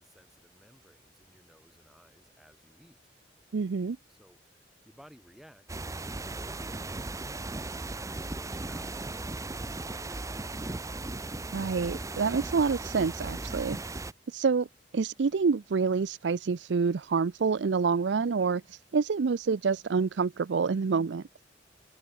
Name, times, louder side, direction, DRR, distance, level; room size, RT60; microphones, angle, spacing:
voice 1, 0.0-3.0 4.1-10.4, equal, ahead, 4.5 m, -57 dB
voice 2, 3.5-4.0 11.5-13.8 14.3-14.7 14.9-21.2, right 5 dB, 70° right, 0.5 m, -27 dB
sound 1, 5.7-14.1, right 2 dB, 20° right, 0.7 m, -37 dB
head